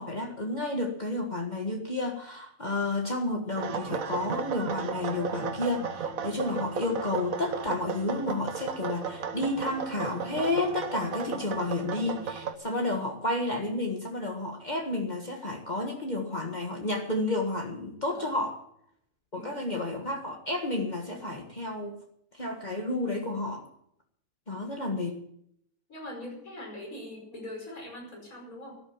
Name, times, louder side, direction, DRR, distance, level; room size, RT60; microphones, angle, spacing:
voice 1, 0.0-18.6 19.3-22.0 22.3-23.7 24.5-25.2, left 2 dB, 30° left, 1 dB, 1.8 m, -31 dB
sound 1, 3.6-12.5, right 6 dB, 80° right, 1.5 m, -34 dB
voice 2, 12.7-13.1 18.1-18.3 19.3-19.7 25.9-28.8, left 1 dB, 80° left, 0 dB, 5.7 m, -42 dB
13.0 x 12.0 x 7.2 m, 0.70 s
omnidirectional pair, 1.5 m